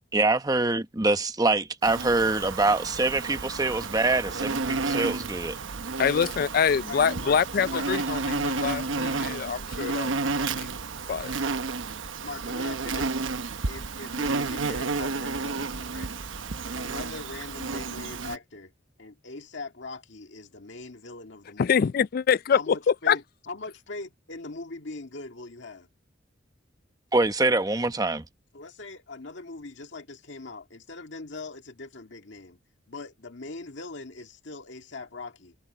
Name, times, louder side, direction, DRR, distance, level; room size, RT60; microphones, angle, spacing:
voice 1, 0.1-5.6 27.1-28.2, right 2 dB, 20° right, 0.9 m, -24 dB
Insect, 1.8-18.4, right 3 dB, 85° right, 1.0 m, -31 dB
voice 2, 6.0-10.8 11.1-11.3 21.6-22.7 23.1-23.2, left 7 dB, 50° left, 0.3 m, -25 dB
voice 3, 6.8-7.9 12.2-13.2 13.7-16.1 16.8-18.7 19.0-21.9 22.5-25.9 28.5-32.6 32.9-35.6, left 3 dB, 70° left, 1.9 m, -41 dB
head